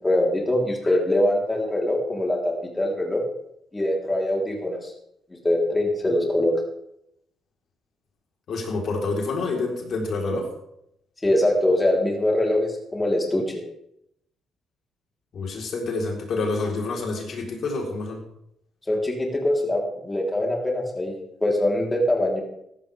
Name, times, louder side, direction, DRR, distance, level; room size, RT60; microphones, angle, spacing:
voice 1, 0.0-3.2 3.7-4.9 5.4-6.6 11.2-13.6 18.9-22.4, left 1 dB, 15° left, -1 dB, 3.9 m, -23 dB
voice 2, 8.5-10.5 15.3-18.2, left 3 dB, 60° left, 0 dB, 4.2 m, -28 dB
15.5 x 12.5 x 3.6 m, 0.78 s
cardioid pair, 90°, 0 cm